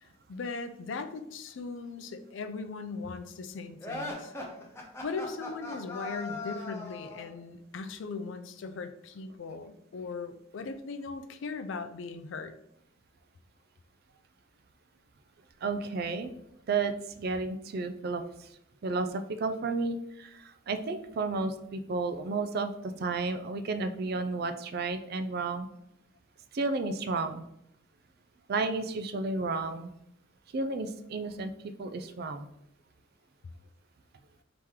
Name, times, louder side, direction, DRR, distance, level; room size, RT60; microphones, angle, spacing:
voice 1, 0.0-4.3 5.0-12.5, left 4 dB, 65° left, 9 dB, 0.4 m, -39 dB
sound 1, 3.8-7.3, left 2 dB, 15° left, 0.7 m, -39 dB
voice 2, 15.6-16.3 16.7-18.5 18.8-25.7 26.5-27.5 28.5-29.9 30.5-32.5, right 3 dB, 50° right, 8 dB, 0.4 m, -32 dB
3.6 x 3.0 x 4.6 m, 0.80 s
head